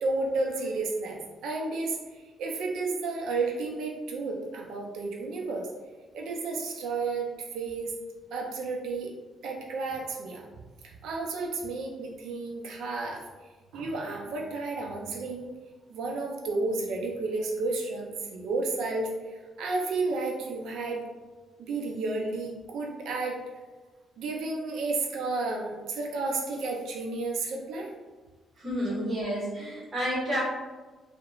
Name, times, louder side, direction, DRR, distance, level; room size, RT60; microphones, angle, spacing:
voice 1, 0.0-2.0 2.4-5.7 6.1-7.3 7.5-7.9 8.3-9.1 9.4-10.4 10.8-13.2 13.7-15.5 15.9-21.0 21.6-23.4 24.2-27.9 28.9-29.0, right 3 dB, 80° right, 0 dB, 0.5 m, -32 dB
voice 2, 28.6-30.4, equal, 40° right, -7 dB, 1.2 m, -30 dB
2.8 x 2.1 x 2.4 m, 1.3 s
cardioid pair, 90°, 0 cm